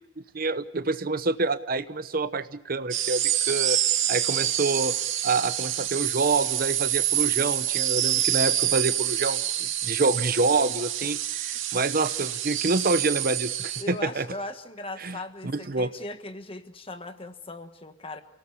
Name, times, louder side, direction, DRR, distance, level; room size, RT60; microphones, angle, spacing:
voice 1, 0.3-3.8 4.1-4.9 5.2-14.3 15.0-15.2 15.4-15.9, right 3 dB, 45° right, 13 dB, 0.8 m, -27 dB
sound 1, 2.9-13.8, right 12 dB, 80° right, 2.4 m, -27 dB
voice 2, 13.8-18.2, left 2 dB, 30° left, 8 dB, 1.4 m, -38 dB
29.0 x 18.0 x 8.3 m, 0.82 s
head